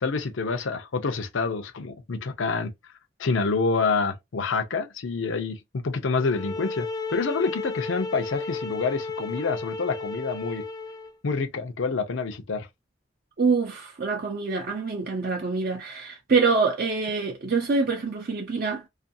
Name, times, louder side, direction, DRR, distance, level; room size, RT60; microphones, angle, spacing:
voice 1, 0.0-2.7 3.2-10.6 11.2-12.7, left 4 dB, 80° left, 0.5 m, -27 dB
sound 1, 6.2-11.1, left 4 dB, 20° left, 0.3 m, -33 dB
voice 2, 13.4-18.9, right 4 dB, 50° right, 0.4 m, -25 dB
2.4 x 2.3 x 2.6 m
head